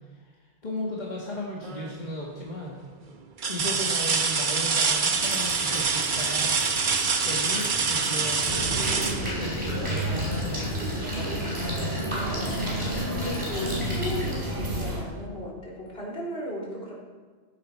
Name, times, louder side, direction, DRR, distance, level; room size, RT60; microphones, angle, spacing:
voice 1, 0.6-2.8 3.5-6.6 7.2-8.9 9.4-10.7, left 1 dB, 45° left, -3 dB, 1.8 m, -35 dB
sound 1, 1.6-2.1 2.7-2.8 3.4-10.1 11.8-12.0 12.4-13.5 14.8-14.9, right 5 dB, 50° right, 1.0 m, -26 dB
sound 2, 5.1-14.4, equal, 30° right, 4.9 m, -36 dB
sound 3, 8.5-15.0, equal, 75° right, 2.5 m, -30 dB
voice 2, 12.1-16.9, left 1 dB, 65° left, -5 dB, 4.0 m, -36 dB
15.0 x 12.0 x 4.4 m, 1.4 s
omnidirectional pair, 1.1 m